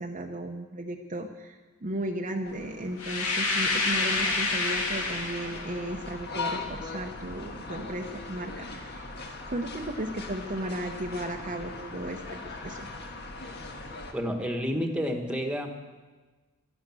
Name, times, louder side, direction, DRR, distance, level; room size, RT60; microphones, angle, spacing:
voice 1, 0.0-9.1 9.5-12.2 12.6-12.9, right 1 dB, 35° right, 2 dB, 0.8 m, -35 dB
sound 1, 2.4-14.1, left 3 dB, 50° left, 1.6 m, -40 dB
sound 2, 3.0-5.8, left 3 dB, 80° left, 2.5 m, -28 dB
voice 2, 14.1-15.7, equal, 5° right, 4 dB, 1.4 m, -29 dB
13.0 x 11.5 x 7.6 m, 1.3 s
head